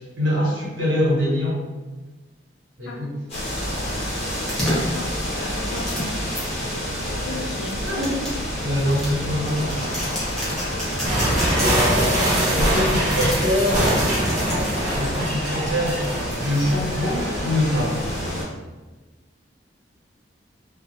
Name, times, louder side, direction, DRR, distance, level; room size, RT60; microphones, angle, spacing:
voice 1, 0.2-1.6 2.8-3.2 7.8-10.0 11.5-14.0 15.0-16.0 16.4-18.0, left 1 dB, 90° right, -5 dB, 0.9 m, -24 dB
sound 1, 3.3-18.4, equal, 35° left, 0.8 m, -29 dB
sound 2, 4.3-6.4 7.2-14.8 15.5-16.0, equal, 5° left, 0.6 m, -30 dB
voice 2, 4.7-5.1 5.4-6.1 7.2-7.8 12.7-13.0, left 2 dB, 75° left, 2 dB, 0.4 m, -35 dB
sound 3, 11.0-17.8, right 1 dB, 40° right, 0.7 m, -24 dB
2.3 x 2.1 x 2.8 m, 1.2 s
head